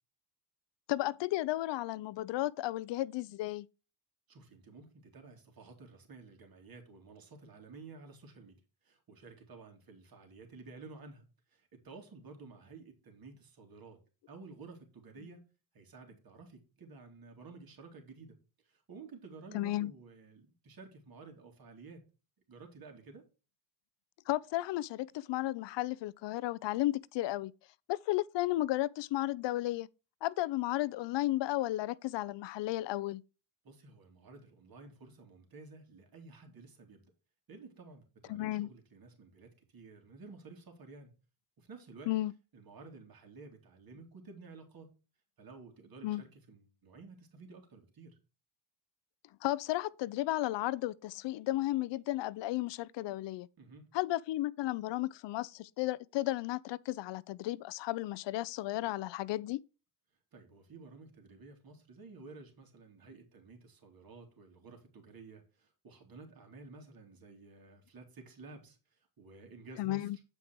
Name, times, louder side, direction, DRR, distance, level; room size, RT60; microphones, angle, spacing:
voice 1, 0.9-3.7 19.5-19.9 24.3-27.5 27.9-29.9 30.2-33.2 38.3-38.7 42.1-42.3 46.0-46.2 49.4-53.5 53.9-59.6 69.8-70.2, left 16 dB, 60° left, 0.7 m, -33 dB
voice 2, 4.3-14.0 14.3-15.4 15.7-18.4 18.6-22.0 22.5-23.2 33.6-37.1 37.5-41.1 41.6-42.1 42.5-44.9 45.4-48.2 53.6-53.9 60.3-70.1, right 3 dB, 45° right, 3.1 m, -53 dB
8.3 x 5.3 x 4.6 m
supercardioid pair, 70°, 49 cm